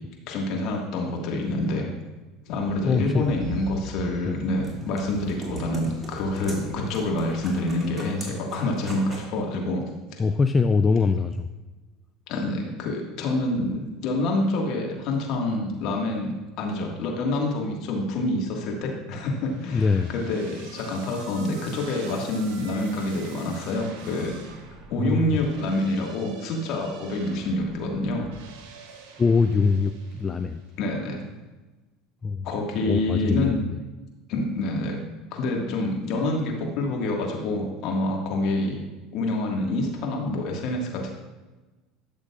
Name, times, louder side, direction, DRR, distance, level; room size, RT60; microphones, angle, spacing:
voice 1, 0.3-1.9 2.5-9.8 10.1-10.2 12.3-24.3 24.9-28.3 30.8-31.2 32.4-33.6 34.3-35.0 35.3-38.8 39.1-41.1, left 2 dB, 60° left, 1 dB, 1.7 m, -27 dB
sound 1, 2.6-7.9, right 2 dB, 40° right, 1.4 m, -42 dB
voice 2, 2.8-3.3 4.3-4.4 10.2-11.5 19.7-20.1 25.0-25.4 29.2-30.6 32.2-32.5 32.8-33.6, left 4 dB, 25° left, 9 dB, 0.3 m, -23 dB
sound 2, 4.1-9.3, right 1 dB, 15° right, 2.3 m, -42 dB
sound 3, 19.4-30.7, right 4 dB, 65° right, 1.5 m, -45 dB
12.0 x 6.6 x 2.4 m, 1.2 s
hypercardioid pair, 80°, 0 cm